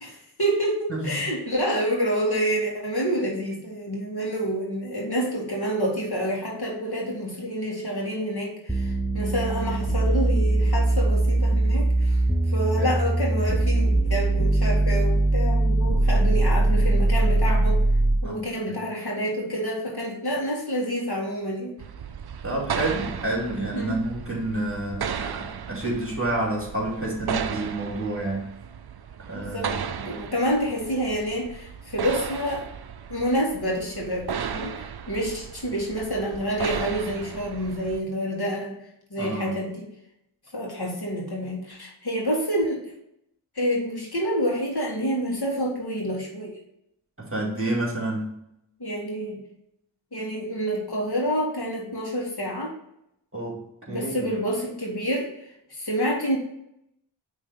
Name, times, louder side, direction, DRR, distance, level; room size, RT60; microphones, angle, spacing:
voice 1, 0.0-12.2 12.5-17.8 18.2-21.7 23.7-24.0 29.3-32.7 33.1-38.7 39.1-39.9 40.5-42.8 43.6-46.5 48.8-49.4 50.1-52.7 53.9-55.3 55.7-56.4, equal, 50° left, -2 dB, 2.1 m, -28 dB
sound 1, 8.7-18.3, right 2 dB, 5° right, 0.8 m, -21 dB
sound 2, 21.8-38.0, right 7 dB, 55° right, 0.5 m, -35 dB
voice 2, 22.4-28.5 29.3-29.7 30.0-30.2 39.2-39.5 47.2-48.3 53.3-54.3, right 2 dB, 30° right, -2 dB, 2.5 m, -29 dB
5.4 x 3.6 x 5.6 m, 0.79 s
cardioid pair, 40°, 47 cm